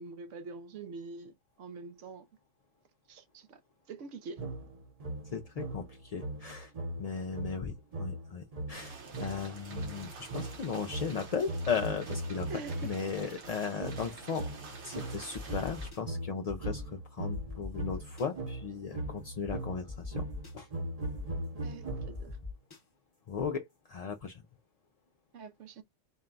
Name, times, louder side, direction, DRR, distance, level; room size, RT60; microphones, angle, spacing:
voice 1, 0.0-2.3 3.1-3.6 3.9-4.4 12.5-13.0 14.0-14.2 21.6-22.4 25.3-25.8, right 4 dB, 85° right, 1.1 m, -45 dB
sound 1, 4.4-13.1 13.8-22.4, right 1 dB, 35° right, 0.9 m, -40 dB
voice 2, 5.3-6.7 7.0-8.9 9.2-12.5 12.8-14.5 14.8-20.2 20.5-20.7 23.3-23.6 23.9-24.4, left 6 dB, 55° left, 0.4 m, -36 dB
sound 2, 8.7-15.9, right 4 dB, 70° right, 1.4 m, -48 dB
sound 3, 15.3-16.0 16.5-16.9 17.3-18.3 19.0-19.1 19.4-19.5 19.9-20.5 21.0-21.4 21.9-22.8, left 4 dB, 20° left, 0.9 m, -41 dB
4.4 x 2.2 x 3.8 m
omnidirectional pair, 1.2 m